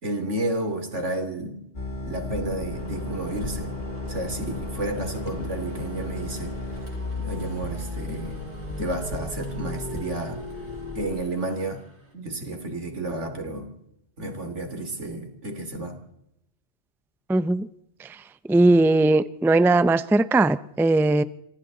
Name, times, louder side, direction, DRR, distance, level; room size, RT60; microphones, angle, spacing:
voice 1, 0.0-1.6 2.0-3.7 4.1-6.5 7.2-8.5 8.8-10.4 10.9-11.8 12.1-13.7 14.2-16.0, right 2 dB, 90° right, 7 dB, 3.2 m, -31 dB
sound 1, 1.7-11.1, left 2 dB, 45° left, 3.5 m, -34 dB
sound 2, 2.7-12.1, right 1 dB, 70° right, 4.2 m, -47 dB
voice 2, 17.3-17.7 18.0-18.2 18.5-21.2, right 2 dB, 5° right, 14 dB, 0.4 m, -19 dB
26.5 x 25.5 x 4.0 m, 0.79 s
omnidirectional pair, 1.2 m